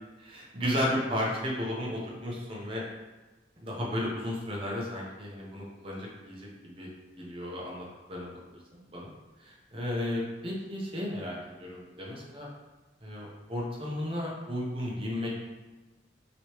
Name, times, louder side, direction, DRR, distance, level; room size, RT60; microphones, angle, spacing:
voice 1, 0.2-2.8 3.6-6.9 7.2-8.6 8.9-9.1 9.4-12.5 13.0-15.4, left 1 dB, 30° right, -4 dB, 0.7 m, -34 dB
3.0 x 3.0 x 3.0 m, 1.2 s
head